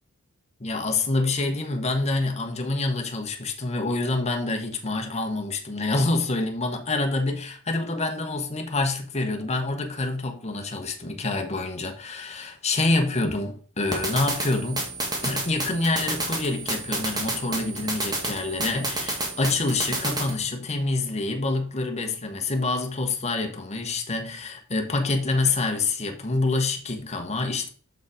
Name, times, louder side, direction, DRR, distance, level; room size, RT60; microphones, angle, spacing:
voice 1, 0.6-14.9 15.2-27.7, left 2 dB, 30° left, 1.2 m, -27 dB
sound 1, 13.9-20.3, right 2 dB, 20° right, 1.8 m, -30 dB
6.5 x 5.2 x 4.9 m
head